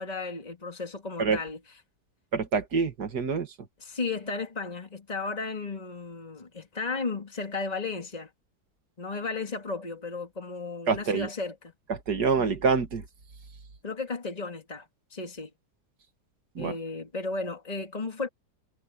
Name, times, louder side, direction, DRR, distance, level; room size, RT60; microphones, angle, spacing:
voice 1, 0.0-1.6 3.8-8.3 9.0-11.7 12.4-12.5 13.8-15.5 16.6-18.3, left 4 dB, 25° left, 2.6 m, -34 dB
voice 2, 2.3-3.5 10.9-11.3 11.9-13.0 16.6-16.7, right 5 dB, 70° right, 2.4 m, -26 dB
omnidirectional pair, 1.8 m